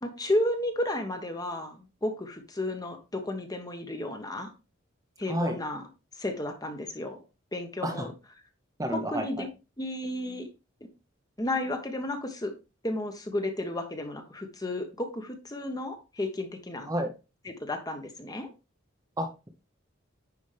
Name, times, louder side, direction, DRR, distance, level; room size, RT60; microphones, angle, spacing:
voice 1, 0.0-4.5 5.2-5.8 6.2-7.2 7.5-8.1 9.1-9.5 9.8-10.5 11.4-12.5 12.8-16.9 17.6-18.5, left 1 dB, 20° left, 6 dB, 1.2 m, -32 dB
voice 2, 5.3-5.6 7.8-8.1 8.8-9.5 16.9-17.1 19.2-19.5, equal, 15° right, 5 dB, 0.9 m, -30 dB
9.6 x 5.1 x 3.4 m, 0.28 s
head